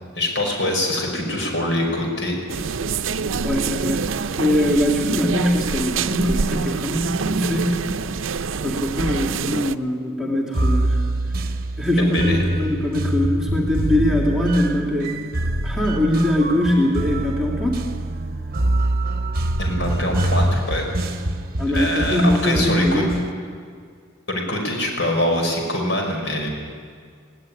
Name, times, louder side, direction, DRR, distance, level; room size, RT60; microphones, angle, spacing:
voice 1, 0.2-2.4 12.0-12.4 19.6-20.9 21.7-23.0 24.3-26.5, left 1 dB, 65° left, 1 dB, 5.6 m, -23 dB
sound 1, 2.5-9.8, right 5 dB, 80° right, 0.6 m, -25 dB
voice 2, 3.4-4.1 4.4-7.8 8.6-11.0 11.8-15.1 15.6-17.9 21.6-23.2, left 1 dB, ahead, -3 dB, 2.7 m, -21 dB
sound 2, 10.5-23.3, right 1 dB, 45° right, 1.1 m, -25 dB
19.0 x 18.0 x 9.8 m, 2.1 s
head